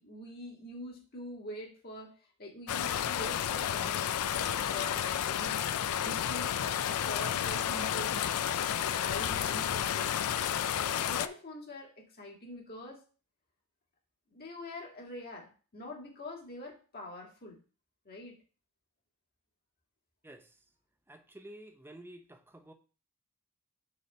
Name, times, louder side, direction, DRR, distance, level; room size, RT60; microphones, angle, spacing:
voice 1, 0.0-2.1 2.4-5.7 6.0-8.3 8.8-10.1 10.6-13.0 14.3-17.6 18.1-18.4, left 1 dB, 45° left, 1.8 m, -45 dB
sound 1, 2.7-11.3, left 9 dB, 75° left, 0.4 m, -31 dB
voice 2, 20.2-20.6 21.1-22.7, right 1 dB, 10° right, 0.6 m, -51 dB
6.5 x 3.3 x 5.4 m
head